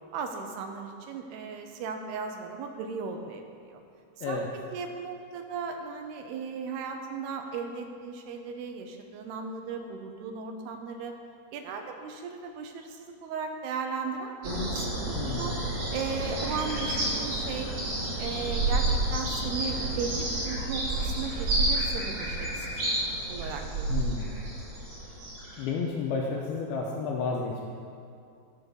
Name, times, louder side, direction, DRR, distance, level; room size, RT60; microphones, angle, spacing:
voice 1, 0.1-3.4 3.7-3.8 4.3-4.4 4.7-11.1 11.5-15.5 15.9-17.7 18.2-22.8 23.3-24.2, right 5 dB, 80° right, 4 dB, 2.6 m, -36 dB
sound 1, 14.4-25.6, right 1 dB, 50° right, 4.1 m, -30 dB
voice 2, 15.1-15.5 23.9-24.3 25.6-27.6, left 4 dB, 80° left, -1 dB, 2.4 m, -31 dB
13.5 x 4.9 x 6.7 m, 2.4 s
omnidirectional pair, 5.1 m